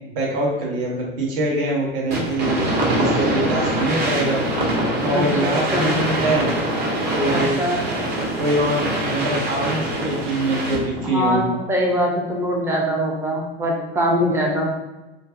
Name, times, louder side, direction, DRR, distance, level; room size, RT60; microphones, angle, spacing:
voice 1, 0.1-4.4 5.0-6.5 7.1-7.6 8.4-11.4, right 1 dB, 55° right, -4 dB, 1.0 m, -23 dB
sound 1, 2.1-11.0, right 1 dB, 30° right, 0.8 m, -23 dB
voice 2, 5.1-6.0 7.3-7.8 11.0-14.6, equal, 10° right, -1 dB, 0.4 m, -23 dB
2.5 x 2.4 x 2.5 m, 1.1 s
hypercardioid pair, 95°, 33 cm